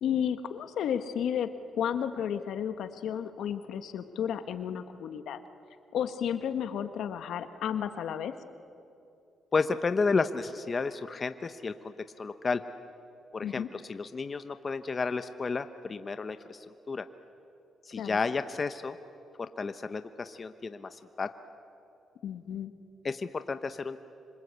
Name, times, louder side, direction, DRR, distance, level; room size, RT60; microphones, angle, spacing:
voice 1, 0.0-1.5 1.8-5.4 5.9-8.4 13.4-13.7 18.0-18.2 22.2-22.7, left 9 dB, 75° left, 9 dB, 1.4 m, -32 dB
voice 2, 9.5-12.6 13.3-17.1 17.8-19.0 19.4-21.3 23.0-24.0, left 4 dB, 35° left, 10 dB, 1.0 m, -32 dB
27.0 x 26.0 x 8.3 m, 2.6 s
cardioid pair, 85°, 0 cm